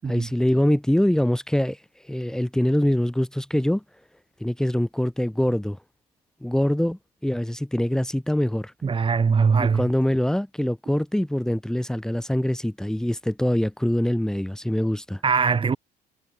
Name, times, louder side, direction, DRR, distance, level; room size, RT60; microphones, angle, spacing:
voice 1, 0.1-1.8 2.1-3.8 4.4-5.8 6.4-8.7 9.6-15.2, left 1 dB, 5° left, 3.3 m, -24 dB
voice 2, 8.8-9.9 15.2-15.8, right 5 dB, 30° right, 5.6 m, -21 dB
cardioid pair, 110°, 17 cm